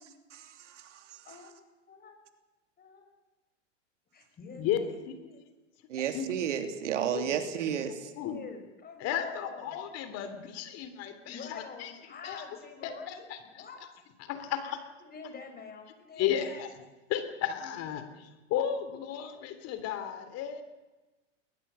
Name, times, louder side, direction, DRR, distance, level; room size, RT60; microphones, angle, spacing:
voice 1, 0.0-1.5 5.9-7.9, right 9 dB, 70° right, 3.0 m, -33 dB
voice 2, 1.9-2.2 2.8-3.2 4.1-5.4 7.2-9.7 11.3-13.8 14.6-14.7 15.0-16.6, left 5 dB, 25° left, 6.1 m, -46 dB
voice 3, 9.0-11.9 12.2-12.4 12.8-13.6 14.2-14.7 16.2-16.7 17.1-20.6, left 10 dB, 40° left, 3.3 m, -34 dB
21.5 x 20.5 x 7.0 m
hypercardioid pair, 105°, 37 cm